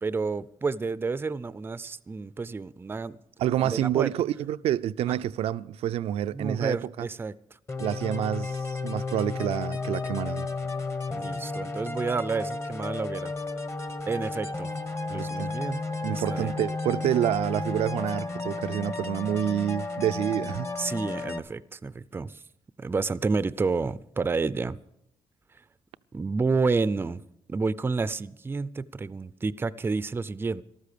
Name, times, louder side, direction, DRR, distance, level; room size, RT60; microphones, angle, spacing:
voice 1, 0.0-3.2 3.6-4.1 5.1-5.2 6.3-7.3 11.1-13.3 14.1-14.7 15.1-15.8 16.1-16.5 20.8-22.4 22.8-24.8 26.1-27.2 27.5-30.6, right 4 dB, 20° right, 0.5 m, -30 dB
voice 2, 3.4-7.1 7.8-10.5 15.1-15.5 16.0-20.7, right 11 dB, 85° right, 0.5 m, -28 dB
sound 1, 7.7-21.4, left 3 dB, 25° left, 1.1 m, -33 dB
13.5 x 13.0 x 6.7 m
cardioid pair, 100°, 10 cm